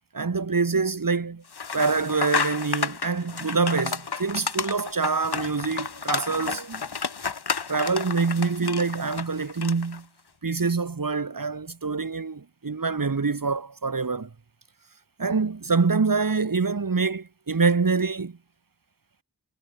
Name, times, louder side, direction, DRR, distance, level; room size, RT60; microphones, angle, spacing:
voice 1, 0.1-1.4 1.7-6.8 7.7-10.1 10.4-14.3 15.2-18.4, right 4 dB, 60° right, 3.0 m, -25 dB
sound 1, 1.5-10.0, left 5 dB, 90° left, 2.9 m, -31 dB
wide cardioid pair, 80°, 38 cm